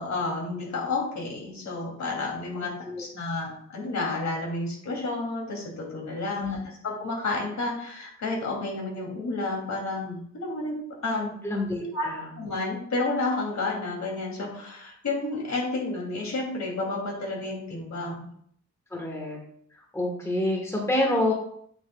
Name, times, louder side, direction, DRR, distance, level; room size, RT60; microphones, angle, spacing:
voice 1, 0.0-2.7 3.0-11.3 11.8-12.1 12.4-18.2, left 2 dB, 65° left, -1 dB, 2.6 m, -31 dB
voice 2, 11.4-12.3 18.9-19.4 19.9-21.3, left 1 dB, 10° left, 0 dB, 1.3 m, -27 dB
8.9 x 6.7 x 2.3 m, 0.65 s
wide cardioid pair, 115°, 30 cm